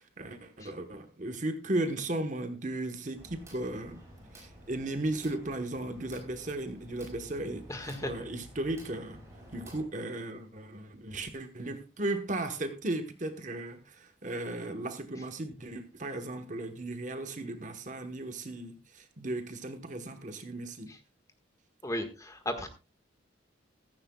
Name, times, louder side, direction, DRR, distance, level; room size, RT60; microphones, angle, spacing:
voice 1, 0.0-4.0 4.3-9.2 9.5-20.9, right 2 dB, 40° right, 1.1 m, -36 dB
sound 1, 3.1-9.8, equal, 15° right, 5.2 m, -51 dB
voice 2, 7.7-8.1 21.8-22.7, left 1 dB, 15° left, 1.5 m, -35 dB
15.5 x 14.0 x 2.3 m
head